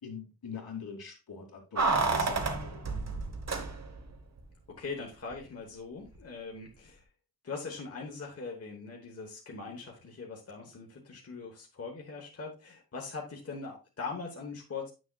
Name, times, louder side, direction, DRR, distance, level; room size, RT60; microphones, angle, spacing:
voice 1, 0.0-2.9, left 5 dB, 75° left, 0 dB, 2.3 m, -43 dB
Keys jangling, 1.8-4.1 4.4-4.5, right 3 dB, 45° right, 1.1 m, -30 dB
voice 2, 4.7-7.0 7.4-14.9, left 4 dB, 40° left, 0 dB, 1.1 m, -41 dB
9.0 x 6.3 x 2.3 m, 0.30 s
wide cardioid pair, 155°, 36 cm